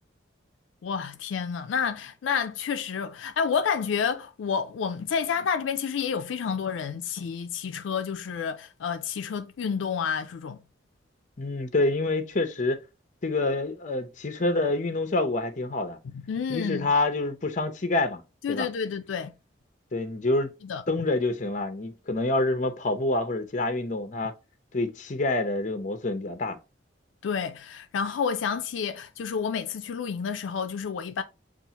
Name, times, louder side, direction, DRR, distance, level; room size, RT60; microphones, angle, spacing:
voice 1, 0.8-10.6 16.1-16.9 18.4-19.3 20.6-20.8 27.2-31.2, left 6 dB, 80° left, 0.4 m, -29 dB
voice 2, 11.4-12.8 13.2-16.0 16.5-18.2 18.5-18.7 19.9-20.5 20.9-24.3 24.7-26.6, left 2 dB, 40° left, 0.7 m, -27 dB
6.8 x 2.4 x 2.8 m
head